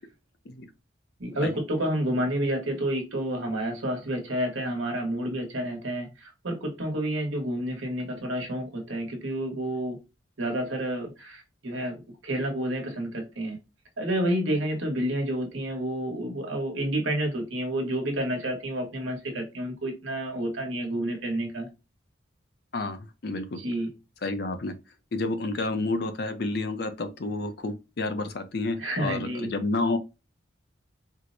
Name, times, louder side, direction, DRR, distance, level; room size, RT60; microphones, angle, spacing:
voice 1, 1.2-10.0 10.4-13.6 14.0-21.7 23.6-23.9 28.8-29.5, right 1 dB, 75° right, 1.2 m, -29 dB
voice 2, 22.7-23.6 24.2-24.7 25.1-30.0, left 2 dB, 55° left, 0.5 m, -30 dB
4.4 x 2.1 x 2.5 m
head